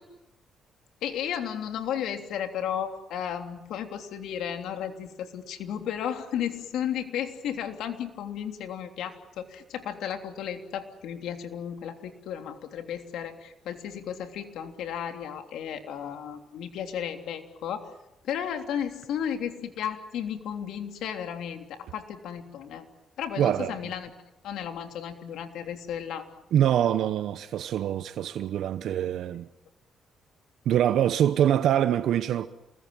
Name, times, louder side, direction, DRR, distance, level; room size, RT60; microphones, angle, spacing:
voice 1, 1.0-17.9 18.2-22.9 23.2-24.1 24.4-26.4, left 9 dB, 80° left, 3.2 m, -34 dB
voice 2, 23.4-23.8 26.5-29.5 30.7-32.5, right 10 dB, 75° right, 1.0 m, -24 dB
28.0 x 21.5 x 9.0 m
cardioid pair, 90°, 0 cm